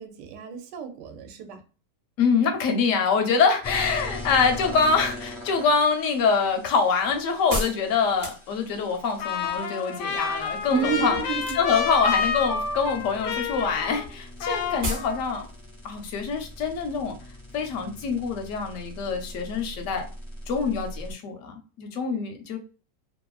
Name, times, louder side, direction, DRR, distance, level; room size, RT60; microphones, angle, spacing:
voice 1, 0.0-1.6 10.7-11.6, right 9 dB, 80° right, 1.2 m, -31 dB
voice 2, 2.2-11.2 11.5-15.4 15.8-17.1 17.5-20.0 20.5-22.6, left 5 dB, 65° left, 0.8 m, -25 dB
sound 1, 3.6-21.1, left 1 dB, 30° left, 0.5 m, -41 dB
sound 2, 5.9-8.9 11.3-11.9 12.3-12.8 13.1-13.3 13.6-13.7 13.9-14.0 14.3-14.4 14.8-15.2 15.5-15.6, equal, 50° right, 0.6 m, -32 dB
Trumpet, 9.2-14.2 14.4-15.4, left 6 dB, 80° left, 1.2 m, -29 dB
2.8 x 2.4 x 2.3 m
omnidirectional pair, 1.8 m